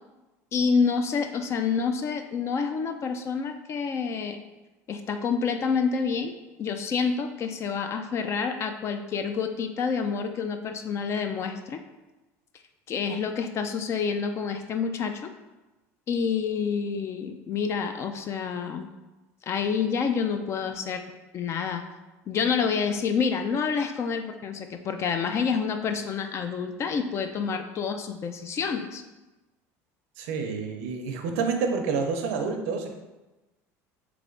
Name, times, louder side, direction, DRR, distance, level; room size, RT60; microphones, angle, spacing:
voice 1, 0.5-4.4 4.9-6.3 6.6-11.8 12.9-15.3 16.1-18.9 19.4-21.0 21.3-21.9 22.3-29.0, left 6 dB, 40° left, 7 dB, 0.4 m, -28 dB
voice 2, 30.2-32.9, right 5 dB, 85° right, 4 dB, 0.6 m, -28 dB
3.4 x 3.3 x 3.8 m, 1.1 s
supercardioid pair, 115°, 7 cm